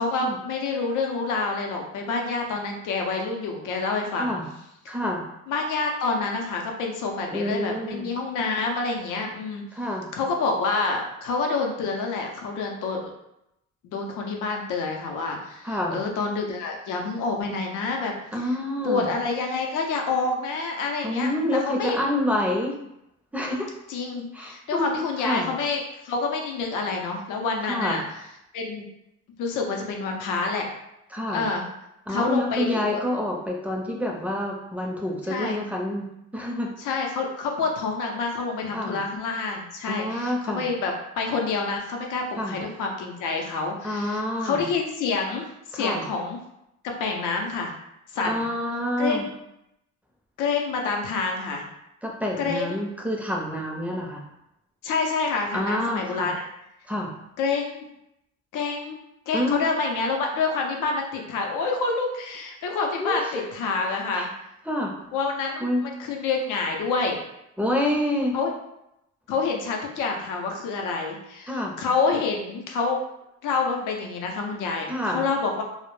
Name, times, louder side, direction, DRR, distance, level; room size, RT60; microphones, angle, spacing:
voice 1, 0.0-4.3 4.9-5.0 5.5-9.6 10.1-13.0 13.8-18.1 18.8-22.0 23.9-28.0 28.5-28.9 29.4-30.7 31.3-31.6 32.1-33.0 35.3-35.6 36.8-45.5 45.7-46.4 46.8-47.7 48.1-48.5 49.0-49.3 50.4-51.6 52.4-52.8 54.8-56.4 57.4-57.8 58.5-64.3 65.1-67.2 68.3-68.5 69.3-73.0 73.4-75.6, left 4 dB, 85° left, 1 dB, 0.5 m, -27 dB
voice 2, 4.9-5.2 7.3-8.1 9.7-10.0 15.6-16.0 18.3-19.1 21.0-22.8 23.3-23.7 24.3-25.5 27.7-28.0 31.1-31.4 32.1-36.7 38.7-39.0 39.9-40.6 42.4-42.6 43.8-44.7 45.7-46.0 48.2-49.3 52.0-54.2 55.5-56.3 56.9-57.1 59.3-59.5 63.0-63.5 64.1-64.3 64.7-64.9 65.6-65.9 67.6-68.4 71.5-71.7 74.9-75.2, left 1 dB, 5° right, -1 dB, 0.5 m, -27 dB
2.1 x 2.1 x 3.0 m, 0.83 s
cardioid pair, 90°, 30 cm